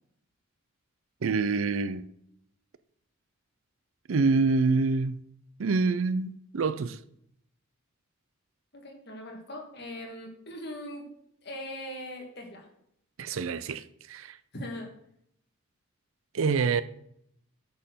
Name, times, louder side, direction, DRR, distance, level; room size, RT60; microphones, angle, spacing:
voice 1, 1.2-2.1 4.1-5.2 5.6-7.0 13.2-14.4 16.3-16.8, right 4 dB, 75° right, 0.5 m, -26 dB
voice 2, 8.7-11.0 11.4-12.7 14.5-14.9, left 1 dB, 50° left, 2.1 m, -40 dB
9.2 x 4.5 x 6.8 m
head